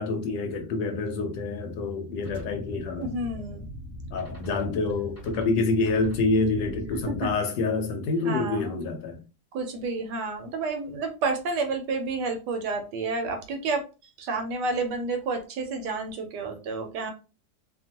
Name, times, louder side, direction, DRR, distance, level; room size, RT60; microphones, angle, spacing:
voice 1, 0.0-3.1 4.1-9.2, left 3 dB, 75° left, 1.2 m, -27 dB
sound 1, 2.2-7.4, equal, 10° left, 0.8 m, -42 dB
voice 2, 3.0-3.6 7.2-7.3 8.2-9.0 9.5-13.8 14.2-17.1, right 3 dB, 70° right, 1.1 m, -30 dB
2.9 x 2.4 x 2.7 m
omnidirectional pair, 2.1 m